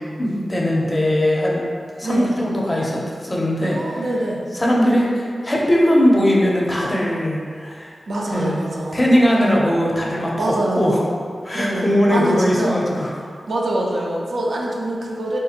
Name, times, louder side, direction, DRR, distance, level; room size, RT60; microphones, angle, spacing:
voice 1, 0.0-1.7 2.0-4.0 4.5-7.9 8.3-8.6 8.9-11.0 11.4-13.3, equal, 20° left, -3 dB, 0.5 m, -19 dB
voice 2, 2.0-2.3 3.6-4.4 8.1-9.0 10.4-11.1 11.5-12.8 13.5-15.4, right 1 dB, 80° right, -2 dB, 0.4 m, -24 dB
3.4 x 2.8 x 2.4 m, 2.1 s
wide cardioid pair, 105°, 0 cm